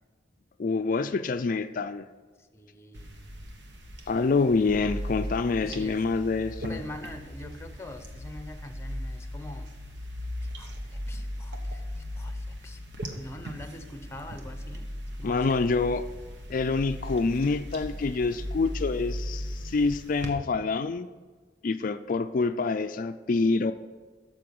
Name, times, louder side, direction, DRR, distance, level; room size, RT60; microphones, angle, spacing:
voice 1, 0.6-2.0 4.1-6.8 15.2-16.0 16.5-21.1 21.6-23.7, left 4 dB, 50° left, 10 dB, 0.4 m, -26 dB
voice 2, 2.5-3.1 5.6-6.1 6.7-9.7 10.6-12.8 13.1-14.9 15.2-15.6, left 1 dB, 15° left, 8 dB, 0.8 m, -44 dB
sound 1, 2.9-20.3, equal, 75° right, 1.4 m, -38 dB
12.5 x 7.6 x 5.3 m, 1.5 s
head